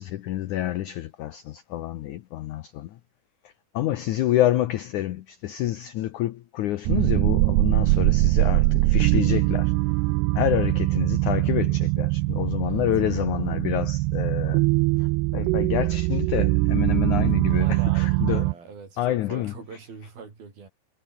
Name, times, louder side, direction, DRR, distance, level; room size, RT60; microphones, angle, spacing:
voice 1, 0.0-2.9 3.7-9.7 10.3-14.6 15.3-18.4 19.0-19.5, left 13 dB, 85° left, 1.7 m, -28 dB
sound 1, 6.9-18.5, right 23 dB, 80° right, 2.5 m, -22 dB
voice 2, 17.5-20.7, right 5 dB, 60° right, 7.8 m, -43 dB
omnidirectional pair, 4.7 m